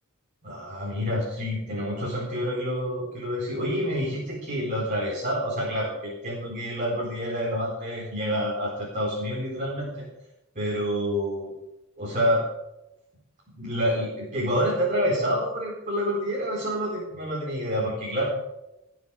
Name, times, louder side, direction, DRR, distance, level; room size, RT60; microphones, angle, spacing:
voice 1, 0.4-10.1 10.5-11.5 12.0-12.4 13.5-18.3, equal, 35° right, -5 dB, 4.2 m, -28 dB
19.5 x 7.5 x 6.4 m, 0.92 s
head